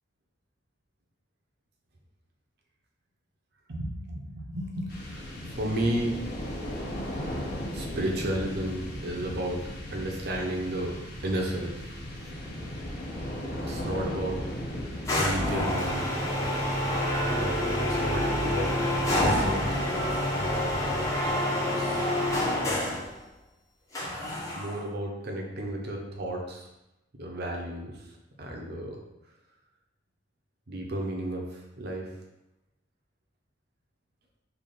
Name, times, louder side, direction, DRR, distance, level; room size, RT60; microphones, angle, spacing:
voice 1, 3.7-6.2 7.7-9.6 9.9-11.0 11.2-11.8 13.7-14.5 15.1-16.1 17.3-18.8 19.1-19.8 21.6-22.1 24.5-26.7 27.2-28.0 28.4-29.0 30.7-32.1, right 1 dB, 60° right, 0 dB, 0.7 m, -33 dB
sound 1, 4.9-21.8, left 1 dB, 55° left, 0.7 m, -38 dB
sound 2, 15.1-23.1 23.9-24.9, left 1 dB, 15° left, 0.6 m, -27 dB
3.3 x 2.4 x 3.9 m, 0.91 s
head